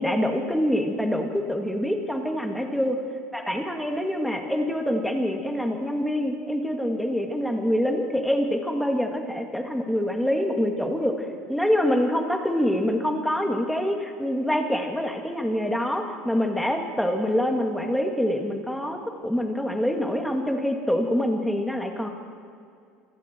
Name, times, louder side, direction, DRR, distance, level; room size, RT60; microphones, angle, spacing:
voice 1, 0.0-3.0 3.3-11.1 11.5-19.0 19.2-22.1, equal, ahead, 2 dB, 2.2 m, -25 dB
27.5 x 27.0 x 4.6 m, 2.3 s
cardioid pair, 170°, 0 cm